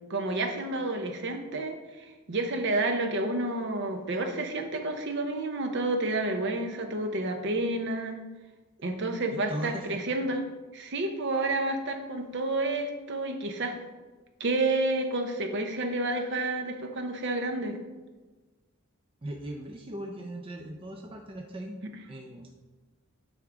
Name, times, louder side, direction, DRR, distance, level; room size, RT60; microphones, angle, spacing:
voice 1, 0.1-1.8 2.3-8.2 8.8-10.4 10.7-13.7 14.4-17.8, right 2 dB, 55° right, 5 dB, 0.8 m, -30 dB
voice 2, 9.3-10.1 19.2-21.8 22.1-22.5, right 1 dB, 25° right, 2 dB, 0.5 m, -39 dB
9.0 x 3.5 x 3.8 m, 1.3 s
head